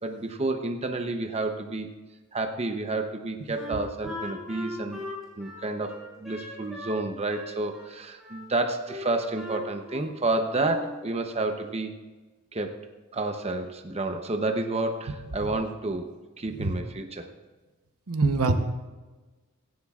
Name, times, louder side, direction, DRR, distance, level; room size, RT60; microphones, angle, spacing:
voice 1, 0.0-1.9 2.3-5.0 5.4-11.9 12.5-12.8 13.1-16.1 16.4-17.3, right 2 dB, 30° right, 5 dB, 0.8 m, -30 dB
Wind instrument woodwind instrument, 3.6-7.0 7.3-8.4 8.9-10.2 10.5-10.9, left 1 dB, ahead, 5.1 m, -39 dB
voice 2, 18.1-18.5, right 3 dB, 75° right, 7 dB, 1.0 m, -23 dB
17.0 x 15.5 x 2.4 m, 1.2 s
head